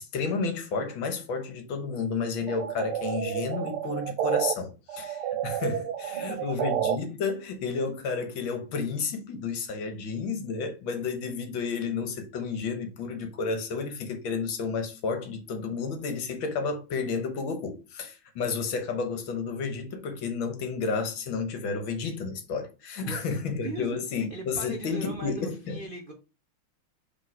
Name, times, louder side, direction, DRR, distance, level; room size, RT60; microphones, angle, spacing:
voice 1, 0.0-25.8, left 4 dB, 70° left, 1.8 m, -31 dB
sound 1, 2.5-4.5 4.9-7.0, right 10 dB, 90° right, 1.6 m, -30 dB
voice 2, 6.1-6.6 23.0-26.1, right 2 dB, 60° right, 0.5 m, -40 dB
5.3 x 3.8 x 4.6 m
omnidirectional pair, 2.3 m